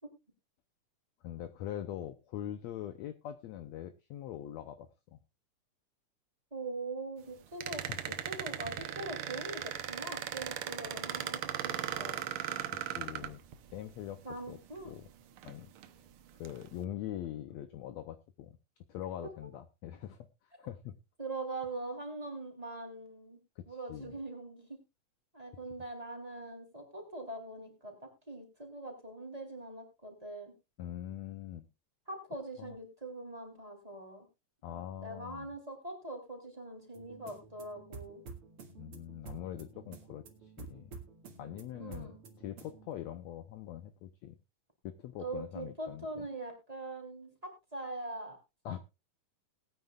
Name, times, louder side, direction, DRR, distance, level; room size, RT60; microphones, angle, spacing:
voice 1, 1.2-5.2 7.7-8.0 12.9-13.4 13.7-14.6 14.8-15.1 15.4-15.7 16.3-18.6 18.9-20.3 20.6-20.9 23.6-24.1 30.8-31.6 32.6-32.8 34.6-35.5 38.8-41.0 41.4-44.4 44.8-46.3 48.6-48.8, left 11 dB, 70° left, 10 dB, 1.7 m, -43 dB
voice 2, 6.5-12.2 14.2-14.9 19.2-19.5 21.2-23.4 23.7-24.8 25.3-30.5 32.1-34.3 34.7-38.2 41.8-42.2 45.2-48.4, right 2 dB, 10° right, 2 dB, 3.1 m, -42 dB
sound 1, 7.6-13.8 14.8-14.9 15.4-15.9 16.4-16.7, right 10 dB, 75° right, 1.2 m, -38 dB
sound 2, 36.9-42.9, right 4 dB, 45° right, 2.6 m, -50 dB
20.5 x 9.2 x 2.4 m, 0.25 s
omnidirectional pair, 3.7 m